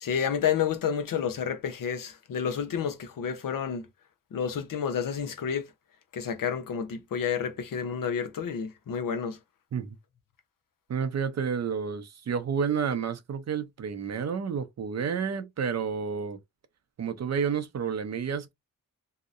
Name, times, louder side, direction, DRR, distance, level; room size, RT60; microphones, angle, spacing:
voice 1, 0.0-3.8 4.3-5.6 6.1-9.4, left 7 dB, 70° left, 0.6 m, -30 dB
voice 2, 10.9-16.4 17.0-18.5, right 6 dB, 50° right, 0.5 m, -30 dB
2.8 x 2.0 x 2.4 m
cardioid pair, 70°, 35 cm